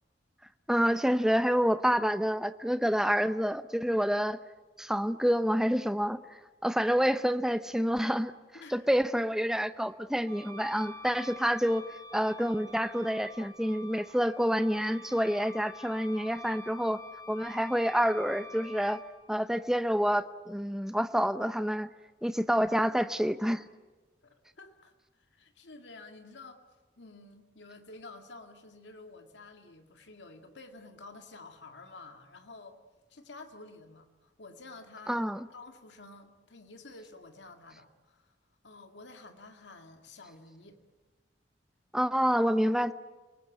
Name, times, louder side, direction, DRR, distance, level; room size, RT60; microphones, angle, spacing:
voice 1, 0.7-4.4 4.8-8.3 8.7-11.8 12.1-17.0 17.3-19.0 19.3-21.9 22.2-23.6 35.1-35.5 41.9-42.9, equal, 5° right, 12 dB, 0.8 m, -28 dB
voice 2, 8.5-8.9 24.2-26.6 27.0-32.8 33.1-38.4 38.6-40.8, left 3 dB, 80° left, 6 dB, 2.1 m, -50 dB
Wind instrument woodwind instrument, 10.2-19.0, left 2 dB, 50° right, 5.5 m, -48 dB
29.5 x 19.5 x 9.1 m, 1.3 s
head